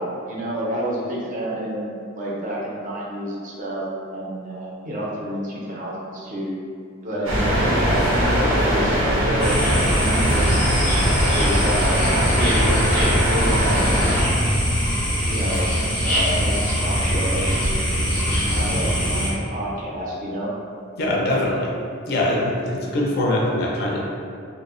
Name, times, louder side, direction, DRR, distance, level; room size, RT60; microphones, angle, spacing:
voice 1, 0.0-3.8 4.1-6.5 7.0-10.6 11.3-14.0 15.3-15.7 16.0-17.7 18.0-20.5, equal, 40° right, -5 dB, 0.4 m, -29 dB
sound 1, 7.2-14.2, equal, 85° right, 0.6 m, -21 dB
sound 2, 9.4-19.3, equal, 5° left, 0.6 m, -22 dB
voice 2, 21.0-21.7 22.1-24.0, left 1 dB, 50° left, -3 dB, 0.4 m, -22 dB
2.7 x 2.0 x 2.4 m, 2.3 s
head